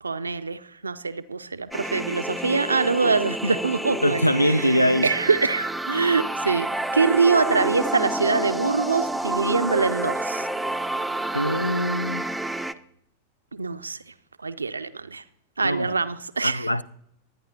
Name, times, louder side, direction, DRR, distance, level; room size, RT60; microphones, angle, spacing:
voice 1, 0.0-4.8 5.0-6.7 6.9-10.5 13.5-14.0 14.4-15.2 15.6-16.7, right 4 dB, 75° right, 0.5 m, -24 dB
sound 1, 1.7-12.7, right 1 dB, 5° right, 0.5 m, -29 dB
voice 2, 4.0-5.1 11.3-12.3 15.6-16.0 16.4-16.8, equal, 85° left, 0.4 m, -22 dB
23.5 x 9.4 x 2.8 m
figure-of-eight pair, 90°, 0 cm